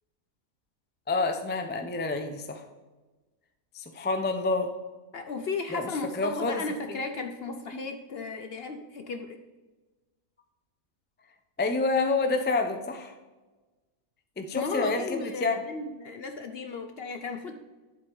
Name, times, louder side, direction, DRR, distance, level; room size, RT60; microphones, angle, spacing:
voice 1, 1.1-2.6 3.7-4.7 5.7-5.9 6.1-6.6 6.9-7.0 11.6-13.1 14.4-15.6, left 3 dB, 15° left, 6 dB, 0.4 m, -28 dB
voice 2, 5.1-9.4 14.5-17.5, left 4 dB, 55° left, 7 dB, 0.7 m, -35 dB
10.5 x 7.4 x 3.9 m, 1.2 s
omnidirectional pair, 1.5 m